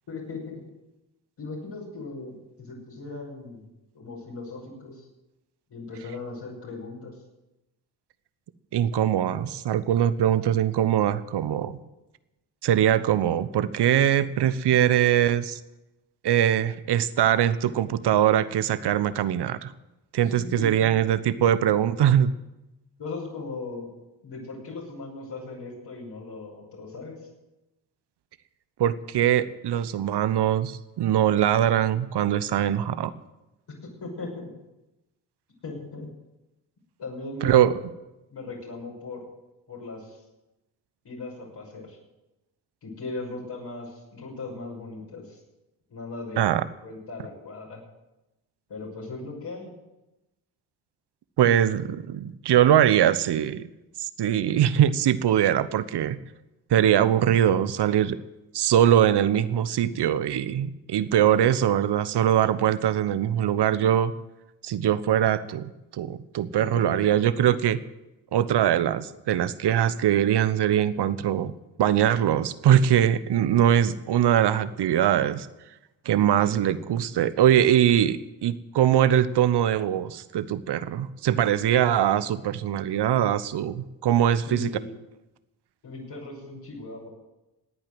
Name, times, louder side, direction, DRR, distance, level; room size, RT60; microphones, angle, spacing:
voice 1, 0.1-0.6 1.4-3.6 3.9-5.1 5.7-7.2 20.2-20.9 23.0-23.9 24.2-27.2 33.8-34.5 35.6-36.1 37.0-37.6 38.3-39.2 39.7-40.2 41.0-42.0 42.8-45.4 45.9-46.5 46.8-47.8 48.7-49.7 66.7-67.0 84.5-84.9 85.8-87.1, left 3 dB, 55° left, -4 dB, 6.2 m, -38 dB
voice 2, 8.7-11.8 12.6-15.6 16.2-19.7 20.1-22.3 28.8-33.1 37.4-37.7 46.4-46.6 51.4-53.6 54.0-56.2 56.7-58.2 58.5-64.1 64.6-67.8 68.3-71.5 71.8-75.5 76.0-84.7, right 10 dB, 55° right, 15 dB, 1.0 m, -22 dB
18.0 x 9.0 x 7.8 m, 0.98 s
hypercardioid pair, 50°, 49 cm